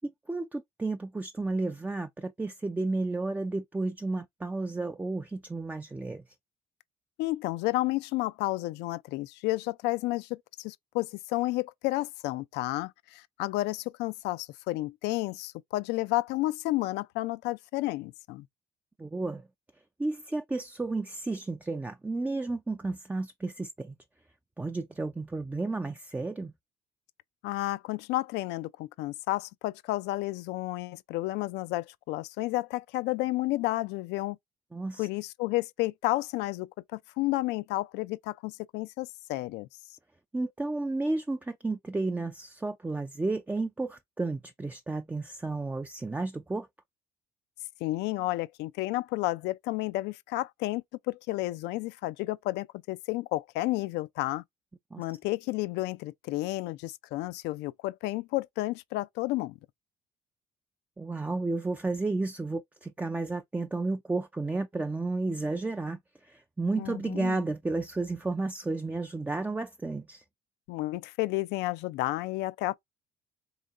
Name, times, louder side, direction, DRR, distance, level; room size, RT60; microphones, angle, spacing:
voice 1, 0.0-6.2 19.0-19.5 20.0-23.9 24.6-26.5 34.7-35.1 40.3-46.7 54.9-55.0 61.0-70.2, right 3 dB, 10° right, 0.3 m, -32 dB
voice 2, 7.2-18.5 27.4-34.4 35.0-39.7 47.8-54.4 55.0-59.6 66.8-67.4 70.7-72.7, left 18 dB, 90° left, 0.4 m, -31 dB
4.0 x 3.1 x 3.5 m
cardioid pair, 110°, 17 cm